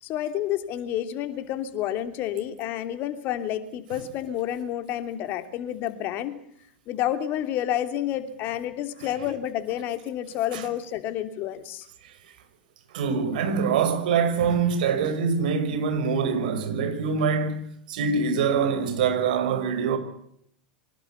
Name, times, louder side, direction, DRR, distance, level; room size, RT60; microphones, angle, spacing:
voice 1, 0.0-6.3 6.9-11.9, left 11 dB, 40° left, 3.0 m, -29 dB
voice 2, 12.9-17.6 17.9-20.0, right 6 dB, 60° right, 5.9 m, -24 dB
25.5 x 19.5 x 8.3 m
figure-of-eight pair, 90°, 5 cm